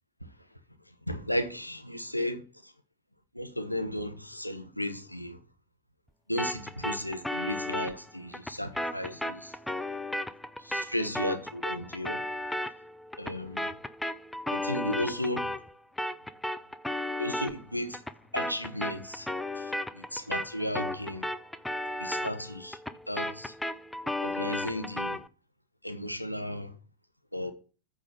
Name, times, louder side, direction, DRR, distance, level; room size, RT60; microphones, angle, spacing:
voice 1, 1.1-2.4 3.3-5.4 6.3-9.5 10.6-12.2 13.2-13.7 14.5-15.5 17.2-18.0 18.3-19.3 19.6-19.7 19.9-21.3 22.0-22.8 23.1-23.5 24.2-25.2 25.8-26.7 27.3-27.5, left 1 dB, 90° left, 1.0 m, -34 dB
sound 1, 6.4-15.7 16.0-25.3, left 1 dB, 5° left, 0.4 m, -35 dB
8.3 x 3.7 x 6.6 m
figure-of-eight pair, 90°, 0 cm